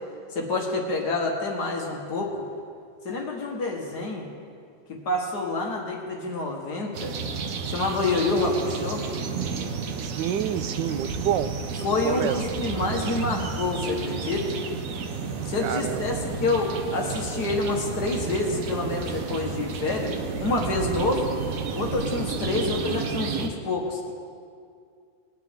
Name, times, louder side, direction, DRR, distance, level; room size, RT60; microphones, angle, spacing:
voice 1, 0.4-2.4 3.1-4.3 4.9-7.1 7.7-9.0 11.8-14.6 15.5-20.1 20.4-21.3 21.7-24.1, left 2 dB, 65° left, 1 dB, 1.9 m, -27 dB
sound 1, 6.9-23.5, right 5 dB, 60° right, 1.1 m, -32 dB
voice 2, 10.0-11.5 12.0-12.4 15.6-16.1, right 10 dB, 80° right, 11 dB, 1.2 m, -28 dB
20.5 x 9.4 x 3.7 m, 2.3 s
omnidirectional pair, 1.9 m